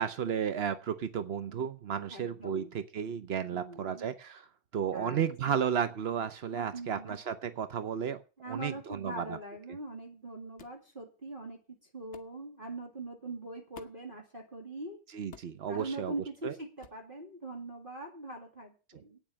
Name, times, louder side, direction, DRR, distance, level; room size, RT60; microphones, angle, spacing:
voice 1, 0.0-4.5 4.7-8.2 8.5-9.4 15.1-16.1 16.4-16.6, right 8 dB, 80° right, 12 dB, 0.5 m, -33 dB
voice 2, 2.1-2.7 3.5-4.1 4.9-5.2 6.5-7.2 8.4-11.6 11.9-15.0 15.7-19.2, right 2 dB, 25° right, 0 dB, 2.3 m, -42 dB
sound 1, 10.6-10.8 12.1-12.4 13.7-14.1 15.3-15.6 16.8-17.0, left 7 dB, 45° left, 1.0 m, -52 dB
9.2 x 7.4 x 8.7 m, 0.34 s
omnidirectional pair, 2.2 m